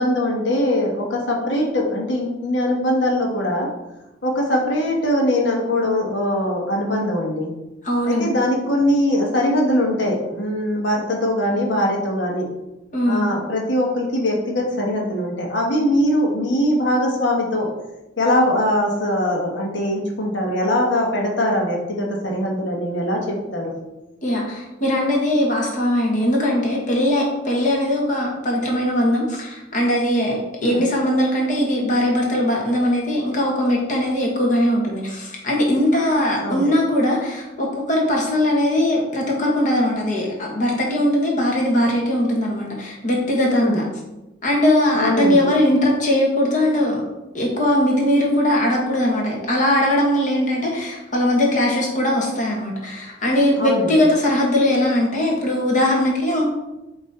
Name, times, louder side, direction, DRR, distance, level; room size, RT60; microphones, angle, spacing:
voice 1, 0.0-3.7 4.2-7.5 8.0-12.5 13.1-17.7 18.2-23.7 30.6-30.8 36.4-36.7 43.5-43.8 44.9-45.5 53.6-54.0, left 1 dB, 70° left, -1 dB, 1.4 m, -21 dB
voice 2, 7.8-8.4 12.9-13.3 24.2-43.8 44.4-47.0 47.3-56.5, left 1 dB, 40° left, -1 dB, 1.6 m, -20 dB
7.5 x 3.1 x 4.3 m, 0.98 s
head